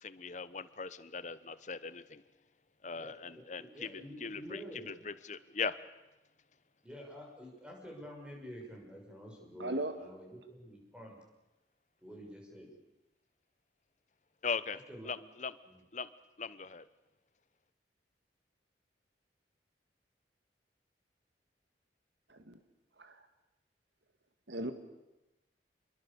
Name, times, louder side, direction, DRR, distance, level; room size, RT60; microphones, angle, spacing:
voice 1, 0.0-2.2 2.8-3.9 4.2-5.7 14.4-14.8 15.0-15.6 15.9-16.1 16.4-16.8, left 5 dB, 40° left, 15 dB, 1.0 m, -39 dB
voice 2, 2.9-4.9 6.8-11.2 12.0-12.7 14.9-15.1 15.6-15.8, equal, 5° right, -1 dB, 6.4 m, -49 dB
voice 3, 9.6-9.9 22.3-22.6 23.0-23.2 24.5-24.7, right 1 dB, 80° right, 8 dB, 1.8 m, -37 dB
27.5 x 22.0 x 7.1 m, 0.99 s
head